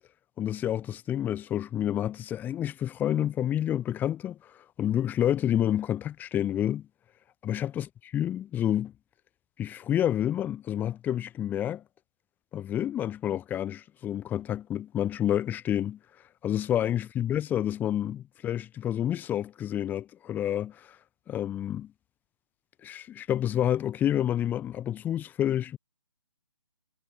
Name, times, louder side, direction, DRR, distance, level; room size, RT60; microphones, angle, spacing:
voice 1, 0.4-6.9 7.4-8.9 9.6-11.8 12.5-16.0 16.4-21.0 21.3-21.9 22.8-25.8, left 11 dB, 10° left, 2.7 m, -29 dB
figure-of-eight pair, 140°, 15 cm